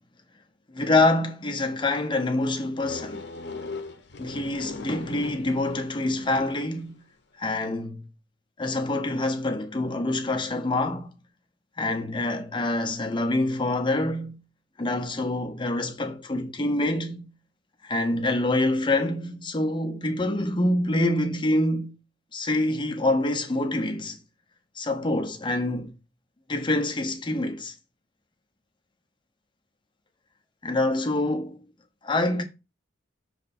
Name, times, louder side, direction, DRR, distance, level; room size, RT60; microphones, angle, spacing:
voice 1, 0.7-3.2 4.2-7.0 7.4-8.0 8.6-11.1 11.8-14.4 14.8-17.3 17.8-21.9 22.3-24.2 24.8-25.9 26.5-27.7 30.6-31.6 32.0-32.4, left 2 dB, 25° left, 1.0 m, -26 dB
sound 1, 2.8-6.8, left 3 dB, 65° left, 0.9 m, -39 dB
6.5 x 3.3 x 4.3 m
head